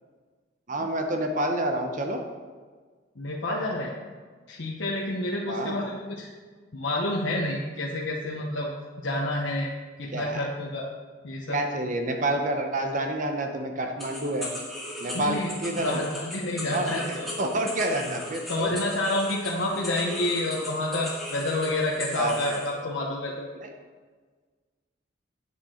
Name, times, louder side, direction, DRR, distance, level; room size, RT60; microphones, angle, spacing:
voice 1, 0.7-2.2 5.5-5.8 10.1-10.5 11.5-14.5 15.0-16.0 16.7-18.7 22.1-22.6 23.6-23.7, right 1 dB, 40° right, 4 dB, 0.8 m, -28 dB
voice 2, 3.2-3.9 4.5-6.3 6.7-8.7 9.0-9.7 10.0-10.9 11.2-11.6 15.1-15.5 15.8-17.3 18.5-23.5, left 1 dB, 75° left, -3 dB, 0.9 m, -29 dB
sound 1, 14.0-22.7, left 1 dB, ahead, 1.9 m, -38 dB
8.3 x 7.5 x 4.3 m, 1.5 s
head